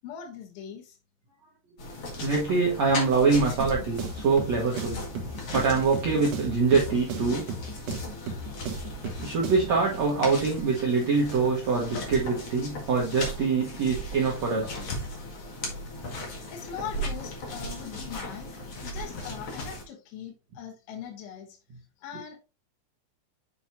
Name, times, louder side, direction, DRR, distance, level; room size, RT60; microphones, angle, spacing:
voice 1, 0.0-1.0 16.5-21.6 22.0-22.4, left 8 dB, 85° left, 2 dB, 3.7 m, -41 dB
sound 1, 1.8-19.8, left 1 dB, 50° left, 1.9 m, -37 dB
voice 2, 2.2-5.0 5.5-7.4 9.2-14.8, right 4 dB, 80° right, -3 dB, 1.5 m, -24 dB
sound 2, 3.6-9.8, right 3 dB, 60° right, 2.3 m, -36 dB
7.7 x 5.9 x 2.7 m, 0.31 s
omnidirectional pair, 5.3 m